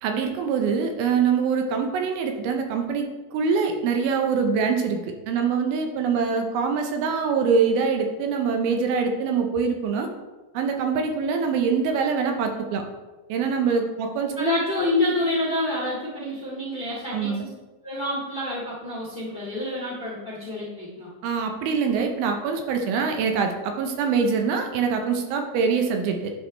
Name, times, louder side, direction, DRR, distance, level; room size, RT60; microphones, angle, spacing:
voice 1, 0.0-10.1 10.5-12.8 13.3-14.5 17.1-17.4 21.2-26.3, right 5 dB, 80° right, 4 dB, 2.5 m, -24 dB
voice 2, 14.4-17.5 17.8-21.1, left 1 dB, 20° left, -7 dB, 1.3 m, -28 dB
10.0 x 4.9 x 3.2 m, 1.2 s
omnidirectional pair, 4.5 m